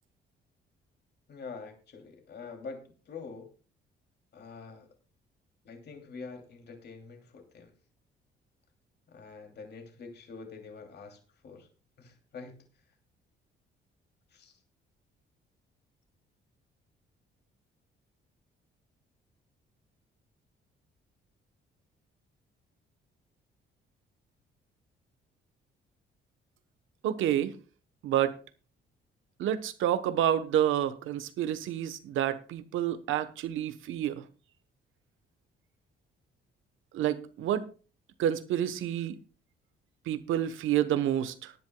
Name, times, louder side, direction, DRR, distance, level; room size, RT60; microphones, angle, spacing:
voice 1, 1.3-3.5 4.3-4.9 5.6-7.7 9.1-11.7 12.0-12.6 14.3-14.5, left 4 dB, 55° left, 2.9 m, -45 dB
voice 2, 27.0-27.6 28.0-28.4 29.4-34.3 36.9-37.7 38.2-39.1 40.1-41.5, right 11 dB, 85° right, 1.1 m, -29 dB
19.5 x 10.5 x 2.3 m
cardioid pair, 90°, 20 cm